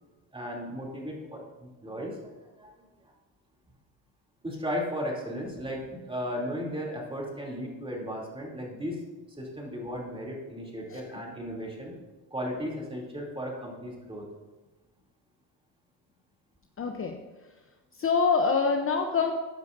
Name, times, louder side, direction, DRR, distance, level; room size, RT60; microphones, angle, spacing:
voice 1, 0.3-2.3 2.6-2.7 4.4-9.0 9.4-12.0 12.3-14.2, equal, 15° right, -3 dB, 3.0 m, -35 dB
voice 2, 16.8-17.2 18.0-19.3, left 5 dB, 35° left, 4 dB, 0.8 m, -25 dB
14.5 x 9.4 x 2.7 m, 1.2 s
cardioid pair, 95°, 38 cm